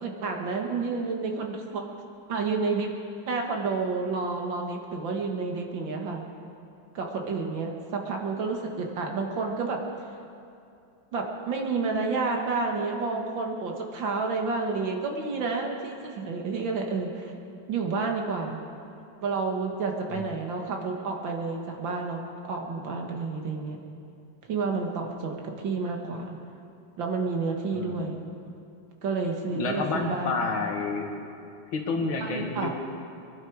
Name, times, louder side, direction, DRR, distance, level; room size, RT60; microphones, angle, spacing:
voice 1, 0.0-1.8 2.3-2.9 3.3-6.2 6.9-9.8 11.1-17.3 17.7-18.6 19.2-23.8 24.5-26.4 27.0-28.2 29.0-30.4 32.2-32.7, right 4 dB, 70° right, 2 dB, 2.2 m, -30 dB
voice 2, 27.7-28.1 29.4-31.1 31.7-32.7, left 3 dB, 90° left, 2 dB, 2.4 m, -29 dB
23.5 x 11.5 x 4.8 m, 2.6 s
omnidirectional pair, 2.2 m